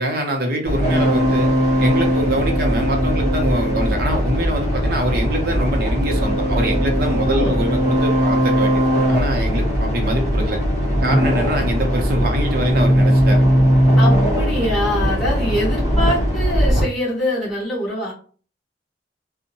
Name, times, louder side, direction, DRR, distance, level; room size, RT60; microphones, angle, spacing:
voice 1, 0.0-1.5 1.8-10.6 11.0-13.6, right 1 dB, 55° right, 3 dB, 0.6 m, -24 dB
sound 1, 0.6-16.8, equal, 45° left, 0.9 m, -19 dB
voice 2, 7.2-7.6 11.5-11.7 14.0-18.1, left 1 dB, ahead, -6 dB, 1.1 m, -24 dB
2.6 x 2.1 x 2.8 m, 0.41 s
head